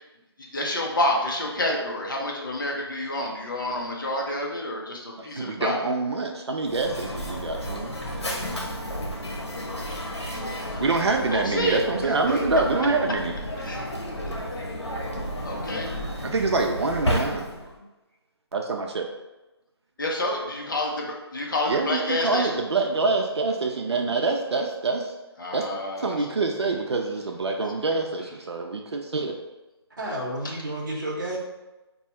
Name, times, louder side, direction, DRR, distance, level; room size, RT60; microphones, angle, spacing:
voice 1, 0.5-5.8 10.7-11.8 13.6-13.9 14.2-14.7 15.4-15.9 20.0-22.6 25.4-26.2, left 1 dB, 50° left, -1 dB, 0.7 m, -29 dB
voice 2, 5.2-7.9 9.9-10.4 10.8-13.3 16.2-17.5 18.5-19.1 21.7-25.1 25.5-25.6 26.0-29.3, right 3 dB, 75° right, 2 dB, 0.5 m, -26 dB
Mechanisms, 6.6-17.8, equal, 85° left, 1.0 m, -32 dB
voice 3, 30.0-31.4, right 1 dB, 45° right, -4 dB, 0.9 m, -31 dB
2.7 x 2.3 x 4.1 m, 1.1 s
figure-of-eight pair, 175°, 14 cm